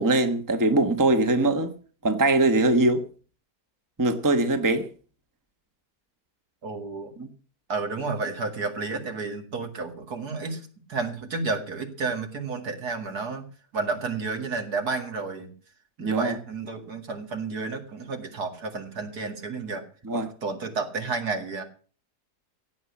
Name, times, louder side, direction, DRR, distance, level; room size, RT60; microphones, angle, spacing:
voice 1, 0.0-1.7 2.0-3.1 4.0-4.9 7.2-7.3 16.0-16.4 20.0-20.3, right 2 dB, 15° right, 1.1 m, -22 dB
voice 2, 6.6-7.1 7.7-13.4 13.7-15.5 16.0-19.8 20.1-21.6, right 4 dB, 70° right, 2.7 m, -31 dB
16.5 x 8.4 x 7.1 m
omnidirectional pair, 1.7 m